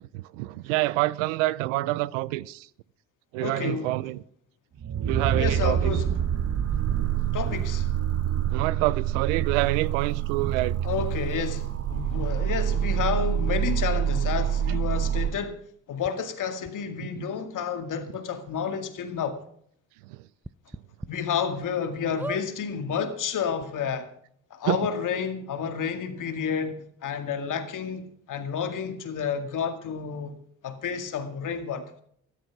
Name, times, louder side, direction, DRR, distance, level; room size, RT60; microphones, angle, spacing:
voice 1, 0.0-2.7 3.3-4.2 5.1-6.0 8.5-10.8 14.7-14.8 17.0-17.3 20.1-20.2 24.7-24.9, right 18 dB, 85° right, 0.5 m, -27 dB
voice 2, 3.4-3.9 5.4-6.1 7.3-7.9 10.8-15.6 15.9-19.4 21.1-24.1 24.5-30.4 30.6-31.8, left 7 dB, 55° left, 2.1 m, -30 dB
sound 1, 4.8-15.3, right 10 dB, 40° right, 1.1 m, -26 dB
sound 2, 16.0-16.1 16.6-16.7 17.7-17.8 18.1-18.2 18.6-18.7 20.4-21.1 21.6-21.7 22.2-22.4 23.3-23.4 23.6-23.7, right 2 dB, 5° right, 0.4 m, -37 dB
13.0 x 11.0 x 6.0 m
hypercardioid pair, 60°, 37 cm